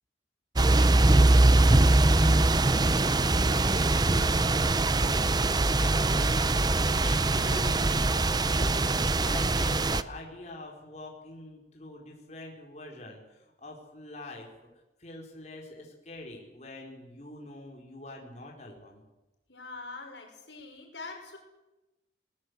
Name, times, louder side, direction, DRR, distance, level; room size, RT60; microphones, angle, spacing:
sound 1, 0.6-10.0, right 2 dB, 25° right, 0.7 m, -22 dB
voice 1, 2.8-14.5 15.0-19.0, left 1 dB, 40° left, -1 dB, 4.5 m, -44 dB
voice 2, 19.5-21.4, left 3 dB, 80° left, 3 dB, 5.7 m, -43 dB
22.0 x 19.5 x 8.1 m, 1.0 s
head